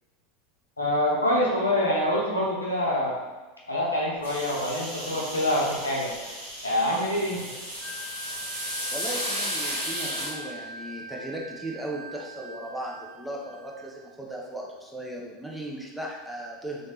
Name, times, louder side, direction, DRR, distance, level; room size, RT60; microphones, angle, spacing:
voice 1, 0.8-3.1 3.7-6.1 6.6-7.5, left 1 dB, 90° left, -4 dB, 0.7 m, -25 dB
sound 1, 4.2-10.3, equal, 80° right, 1.5 m, -34 dB
Wind instrument woodwind instrument, 7.8-13.9, right 1 dB, 30° right, 0.8 m, -41 dB
voice 2, 8.9-16.9, right 1 dB, 5° right, -3 dB, 0.7 m, -37 dB
3.3 x 3.1 x 2.8 m, 1.2 s
figure-of-eight pair, 85°, 0 cm